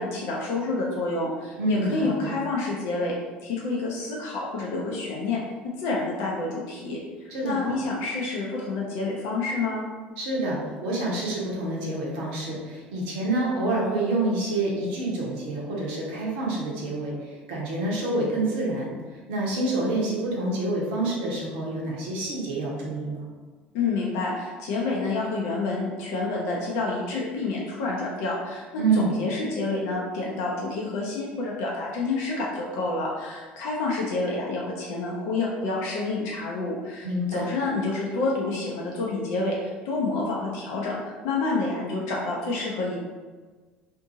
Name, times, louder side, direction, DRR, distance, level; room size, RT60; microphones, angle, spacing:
voice 1, 0.0-3.2 3.4-5.4 5.8-9.8 23.7-43.0, left 3 dB, 60° left, -3 dB, 0.5 m, -28 dB
voice 2, 1.6-2.3 7.3-7.7 10.2-18.9 19.3-23.3 28.8-29.2 37.0-37.5, right 2 dB, 65° right, -3 dB, 0.8 m, -27 dB
2.6 x 2.5 x 2.7 m, 1.4 s
figure-of-eight pair, 65°, 6 cm